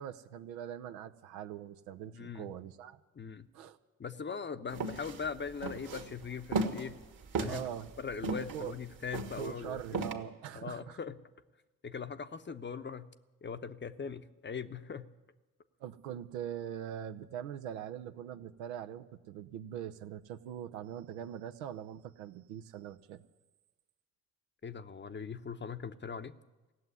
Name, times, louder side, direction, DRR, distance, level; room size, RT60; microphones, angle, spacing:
voice 1, 0.0-3.0 3.5-3.8 7.5-7.9 8.5-8.7 9.4-11.0 15.8-23.2, right 10 dB, 70° right, 9 dB, 0.8 m, -42 dB
voice 2, 2.1-2.5 3.2-3.5 4.0-7.0 7.4-7.6 8.0-10.0 10.5-11.2 11.8-13.1 13.4-15.1 24.6-26.3, left 6 dB, 25° left, 11 dB, 0.9 m, -40 dB
sound 1, 4.7-10.1, right 3 dB, 50° right, 1.9 m, -36 dB
16.5 x 7.8 x 9.7 m, 1.2 s
figure-of-eight pair, 45°, 43 cm